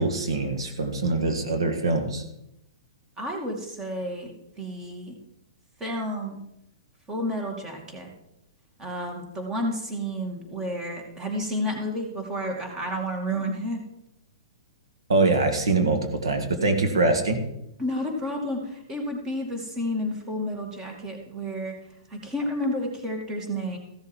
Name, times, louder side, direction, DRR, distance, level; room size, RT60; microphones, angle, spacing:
voice 1, 0.0-2.2 15.1-17.4, right 3 dB, 90° right, 5 dB, 1.8 m, -23 dB
voice 2, 3.2-5.2 5.8-6.4 7.1-8.1 8.8-13.8 17.8-21.7 22.1-23.8, equal, 20° right, 2 dB, 2.4 m, -31 dB
15.0 x 7.1 x 4.6 m, 0.83 s
hypercardioid pair, 140°, 3 cm